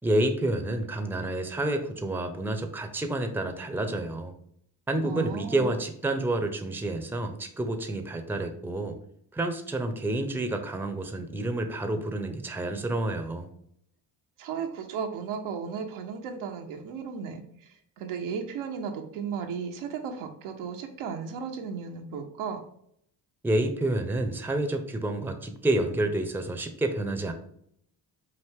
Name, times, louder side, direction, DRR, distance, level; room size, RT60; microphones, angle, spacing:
voice 1, 0.0-4.3 4.9-9.0 9.3-13.5 23.4-27.3, right 1 dB, 5° right, 6 dB, 0.6 m, -29 dB
voice 2, 5.0-5.8 14.4-22.6, right 6 dB, 80° right, 4 dB, 0.8 m, -35 dB
4.8 x 2.6 x 3.5 m, 0.69 s
supercardioid pair, 55°, 49 cm